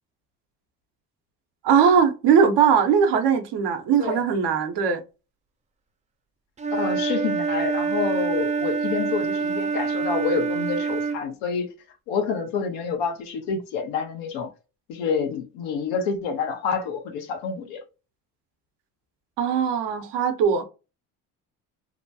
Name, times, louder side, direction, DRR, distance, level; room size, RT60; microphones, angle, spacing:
voice 1, 1.6-5.0 19.4-20.6, right 7 dB, 70° right, 0.8 m, -20 dB
Wind instrument woodwind instrument, 6.6-11.2, right 5 dB, 20° right, 0.3 m, -26 dB
voice 2, 6.7-11.7 12.1-14.5 14.9-17.8, left 5 dB, 85° left, 0.9 m, -28 dB
2.9 x 2.2 x 2.6 m
supercardioid pair, 70°, 44 cm